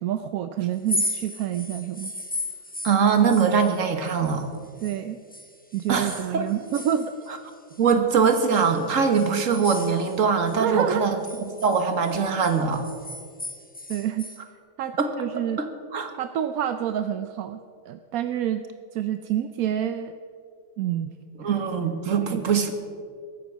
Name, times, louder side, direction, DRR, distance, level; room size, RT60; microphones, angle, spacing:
voice 1, 0.0-2.1 4.8-5.2 5.7-7.1 10.6-11.0 13.9-14.3 14.8-15.6 16.2-17.6 17.9-18.6 18.9-20.1 20.8-21.1 22.3-22.4, right 10 dB, 65° right, 9 dB, 1.0 m, -28 dB
sound 1, 0.7-5.0 5.3-7.8 8.3-10.6 10.9-14.4, left 1 dB, 10° left, 0.6 m, -36 dB
voice 2, 2.8-4.5 5.9-6.5 7.8-11.2 11.6-12.8 15.0-15.1 15.6-16.1 21.4-22.7, right 6 dB, 50° right, 7 dB, 1.7 m, -22 dB
22.0 x 9.2 x 6.2 m, 2.2 s
omnidirectional pair, 1.8 m